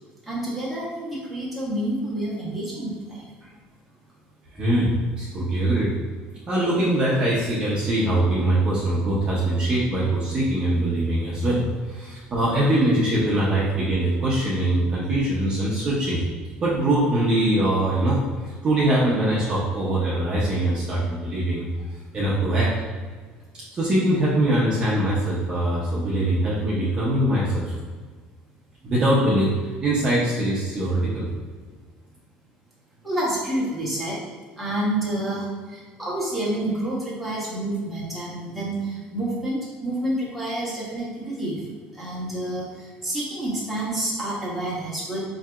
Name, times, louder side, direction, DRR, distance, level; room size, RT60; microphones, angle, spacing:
voice 1, 0.3-3.2 33.0-34.1 34.6-35.5 35.7-41.6 41.9-42.7 43.0-45.2, right 1 dB, ahead, -8 dB, 1.0 m, -28 dB
voice 2, 4.5-5.9 6.5-11.6 11.9-16.2 16.6-21.6 22.1-22.7 23.7-27.7 28.8-29.5 29.8-31.3, right 1 dB, 25° right, -7 dB, 0.6 m, -22 dB
4.7 x 2.7 x 2.3 m, 1.5 s
cardioid pair, 165°, 3 cm